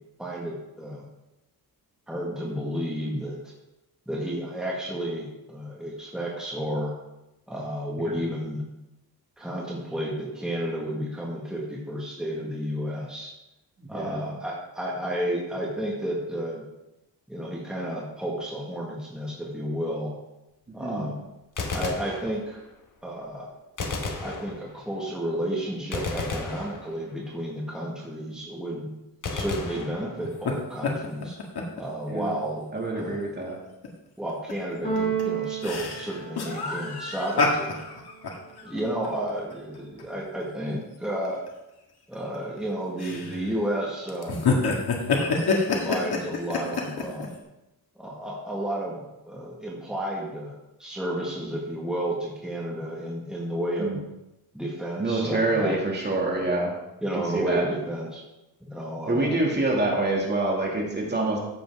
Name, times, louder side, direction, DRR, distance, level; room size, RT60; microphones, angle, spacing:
voice 1, 0.2-1.0 2.1-3.4 4.1-6.9 7.5-8.6 9.4-13.3 13.9-16.7 17.3-20.1 20.7-21.2 21.7-22.6 23.0-23.5 24.2-28.9 29.3-31.4 31.8-32.7 33.0-33.3 34.2-37.8 38.6-41.4 42.1-44.4 45.1-47.3 48.0-54.0 54.5-55.8 57.0-58.2 58.6-59.3, right 1 dB, ahead, -4 dB, 1.8 m, -32 dB
voice 2, 13.8-14.2 20.8-21.1 32.1-32.3 32.7-33.6 53.8-54.0 55.0-56.7 57.1-57.6 59.1-61.4, right 2 dB, 25° right, -2 dB, 2.4 m, -26 dB
Gunshot gunfire, 21.4-22.8 23.8-25.0 25.9-27.3 29.2-30.6, left 3 dB, 55° left, 1.3 m, -34 dB
sound 1, 30.2-30.5 30.8-31.8 32.2-32.3 32.8-33.0 33.8-33.9 34.3-34.5 35.0-40.0 40.4-40.5 41.2-41.5 42.1-42.6 43.0-43.6 44.1-47.3, left 4 dB, 85° left, 2.0 m, -27 dB
Keyboard (musical), 34.8-36.9, right 6 dB, 20° left, 3.1 m, -30 dB
13.5 x 7.7 x 3.6 m, 0.95 s
wide cardioid pair, 145°, 37 cm